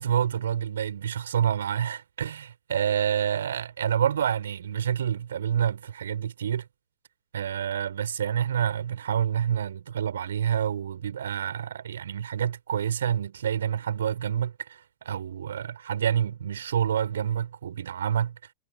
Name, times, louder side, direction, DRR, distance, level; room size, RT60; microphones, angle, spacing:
voice 1, 0.0-6.6 7.3-18.4, right 9 dB, 65° right, 5.0 m, -28 dB
figure-of-eight pair, 90°, 0 cm